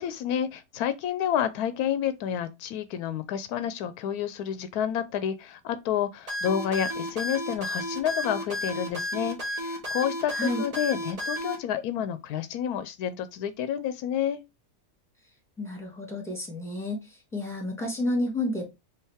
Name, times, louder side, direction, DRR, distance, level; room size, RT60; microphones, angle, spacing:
voice 1, 0.0-14.4, left 9 dB, 85° left, 1.1 m, -29 dB
sound 1, 6.3-11.6, left 1 dB, 25° right, 1.1 m, -32 dB
voice 2, 10.3-10.6 15.6-18.7, left 1 dB, ahead, 1.6 m, -30 dB
4.7 x 2.8 x 3.4 m
omnidirectional pair, 1.6 m